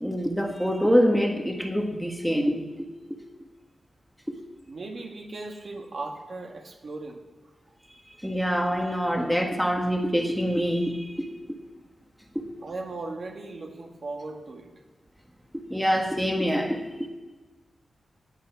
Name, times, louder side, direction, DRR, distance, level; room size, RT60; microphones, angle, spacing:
voice 1, 0.0-2.9 8.2-11.3 12.3-12.4 15.7-17.1, equal, ahead, 2 dB, 1.5 m, -25 dB
voice 2, 4.7-7.2 12.6-14.7, right 3 dB, 55° right, 2 dB, 1.9 m, -37 dB
17.5 x 9.6 x 6.0 m, 1.2 s
wide cardioid pair, 155°, 0 cm